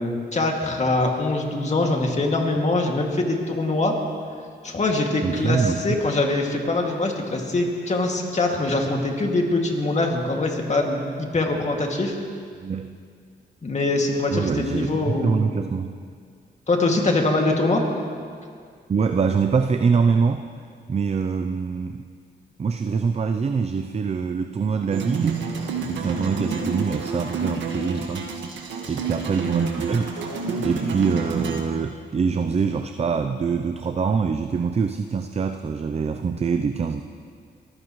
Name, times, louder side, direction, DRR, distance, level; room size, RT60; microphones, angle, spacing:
voice 1, 0.0-4.0 4.6-12.2 13.6-15.5 16.7-17.8, left 2 dB, 40° left, 1 dB, 2.3 m, -23 dB
voice 2, 5.2-5.9 12.6-13.0 14.3-16.0 18.9-20.4 20.9-22.0 22.6-25.4 25.9-28.3 28.9-30.1 30.6-37.0, right 5 dB, 35° right, 7 dB, 0.6 m, -24 dB
sound 1, 24.9-31.6, right 4 dB, 90° right, 1.6 m, -29 dB
23.0 x 15.0 x 3.1 m, 2.1 s
cardioid pair, 80°, 19 cm